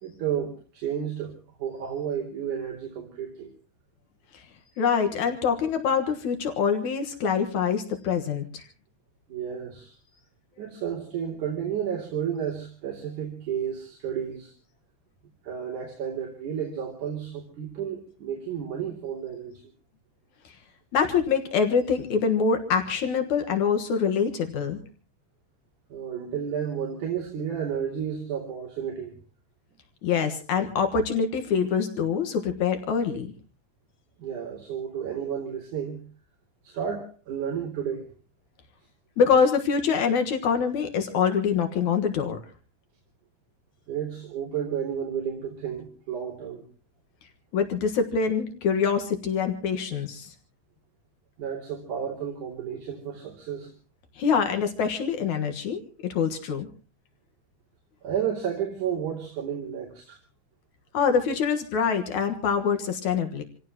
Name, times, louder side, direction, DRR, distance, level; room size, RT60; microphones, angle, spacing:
voice 1, 0.0-1.3 1.6-3.5 9.3-9.9 10.6-14.5 15.4-19.7 25.9-29.2 34.2-36.0 36.6-38.1 43.9-46.6 51.4-53.7 58.0-60.2, right 8 dB, 80° right, -1 dB, 4.3 m, -32 dB
voice 2, 4.8-8.7 20.9-24.8 30.0-33.3 39.2-42.4 47.5-50.3 54.2-56.7 60.9-63.4, left 6 dB, 75° left, 6 dB, 2.9 m, -25 dB
28.0 x 17.0 x 2.9 m, 0.38 s
omnidirectional pair, 3.4 m